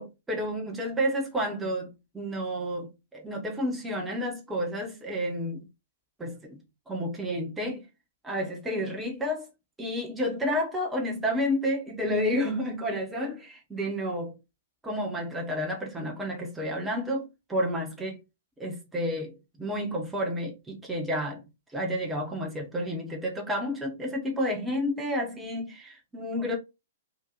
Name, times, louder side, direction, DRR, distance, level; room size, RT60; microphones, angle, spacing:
voice 1, 0.0-5.6 6.2-6.6 6.9-7.9 8.2-9.5 9.8-14.3 14.8-18.2 18.6-19.3 19.6-21.4 21.7-26.6, equal, 10° right, 1.0 m, -30 dB
3.0 x 2.4 x 3.7 m
figure-of-eight pair, 115°, 0 cm